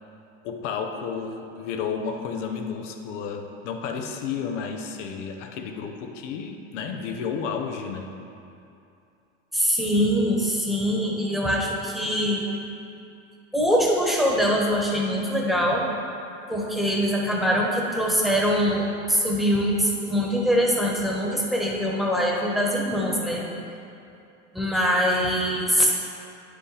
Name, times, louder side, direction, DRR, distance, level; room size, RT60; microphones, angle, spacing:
voice 1, 0.4-8.1, left 6 dB, 75° left, 4 dB, 0.8 m, -32 dB
voice 2, 9.5-12.4 13.5-15.9 16.5-23.5 24.5-25.9, equal, ahead, -3 dB, 1.2 m, -23 dB
9.5 x 5.0 x 3.3 m, 2.7 s
hypercardioid pair, 90°, 36 cm